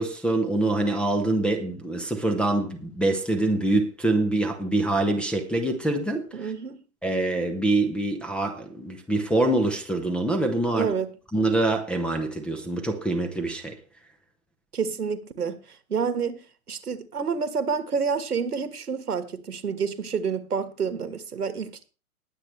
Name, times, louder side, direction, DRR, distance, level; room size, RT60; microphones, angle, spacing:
voice 1, 0.0-6.5 7.0-10.9 11.3-13.8, right 2 dB, ahead, 0.7 m, -25 dB
voice 2, 6.3-6.8 10.7-11.1 14.7-21.8, right 6 dB, 80° right, 1.6 m, -29 dB
20.0 x 7.8 x 3.2 m
figure-of-eight pair, 120°, 45 cm